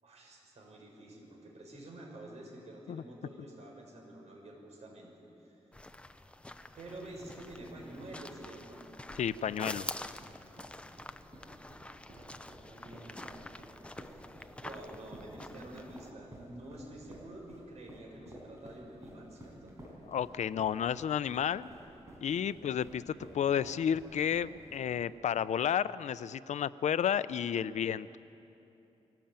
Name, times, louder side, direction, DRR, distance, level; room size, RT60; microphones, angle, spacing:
voice 1, 0.0-5.1 5.4-5.7 6.7-8.8 11.7-13.4 14.0-14.2 14.6-19.8 22.3-22.7, right 1 dB, 70° right, -1 dB, 6.3 m, -49 dB
sound 1, 5.7-16.1, left 1 dB, 10° left, 0.7 m, -47 dB
sound 2, 6.9-25.2, right 1 dB, 25° right, 5.6 m, -53 dB
voice 2, 9.2-9.9 20.1-21.7 22.2-28.2, left 8 dB, 85° left, 16 dB, 0.5 m, -32 dB
24.5 x 18.0 x 8.9 m, 2.9 s
wide cardioid pair, 155°, 12 cm